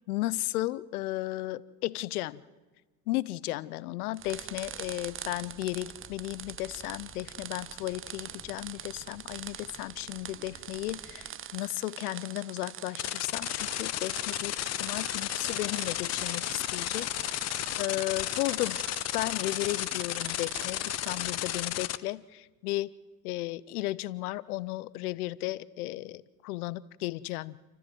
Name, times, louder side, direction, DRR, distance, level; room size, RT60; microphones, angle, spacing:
voice 1, 0.1-2.4 3.1-17.5 17.8-18.8 19.1-22.9 23.2-27.6, left 17 dB, 65° left, 20 dB, 0.8 m, -34 dB
sound 1, 4.1-21.9, right 10 dB, 25° right, 0.9 m, -44 dB
sound 2, 4.2-11.3, equal, 10° left, 2.1 m, -55 dB
sound 3, 13.0-22.0, left 14 dB, 35° left, 0.7 m, -33 dB
28.5 x 14.0 x 7.7 m, 1.2 s
hypercardioid pair, 75°, 48 cm